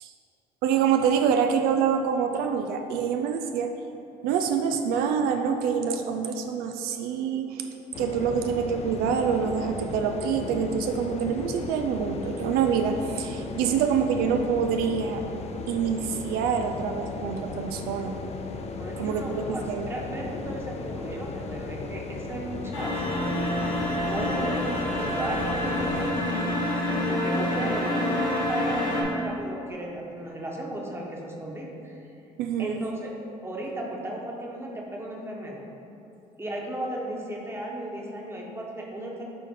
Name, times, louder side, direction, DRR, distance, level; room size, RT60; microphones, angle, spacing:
voice 1, 0.6-3.7 4.2-7.7 8.0-15.2 15.7-18.2 19.0-19.9 32.4-32.8, right 7 dB, 85° right, 5 dB, 0.4 m, -26 dB
sound 1, 7.9-26.1, left 4 dB, 45° left, 0.5 m, -36 dB
voice 2, 18.8-23.2 24.1-26.5 27.1-32.1 32.6-33.1 33.4-35.6 36.4-39.2, right 1 dB, 15° right, -1 dB, 1.1 m, -35 dB
sound 2, 22.7-29.0, left 1 dB, 80° left, 1.2 m, -27 dB
8.2 x 3.7 x 3.7 m, 2.8 s
supercardioid pair, 80°, 15 cm